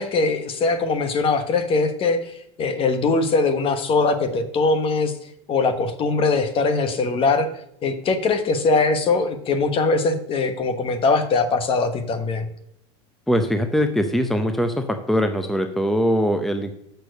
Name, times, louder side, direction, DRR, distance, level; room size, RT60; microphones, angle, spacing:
voice 1, 0.0-2.2 2.6-5.1 5.5-7.5 7.8-12.5, left 3 dB, 35° left, 10 dB, 1.1 m, -21 dB
voice 2, 13.3-16.7, equal, ahead, 7 dB, 0.7 m, -22 dB
6.9 x 5.9 x 6.5 m, 0.74 s
supercardioid pair, 110°, 15 cm